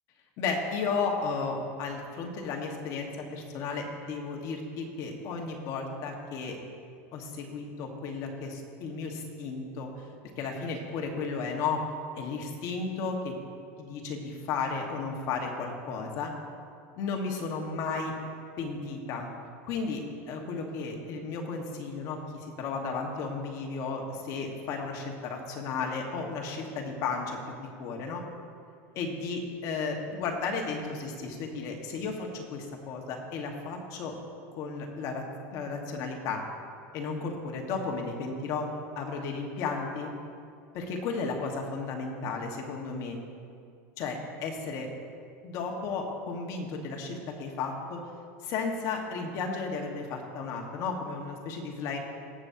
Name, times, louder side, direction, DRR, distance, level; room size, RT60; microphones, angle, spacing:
voice 1, 0.4-6.6 7.1-9.9 10.4-11.8 12.1-13.3 13.8-16.3 17.0-18.1 18.6-19.3 19.7-28.2 28.9-34.1 34.5-36.4 36.9-38.7 39.0-40.1 40.7-43.2 44.0-44.9 45.4-48.0 48.4-52.0, left 4 dB, 50° left, 1 dB, 1.4 m, -34 dB
17.5 x 7.2 x 2.8 m, 2.3 s
supercardioid pair, 140°, 7 cm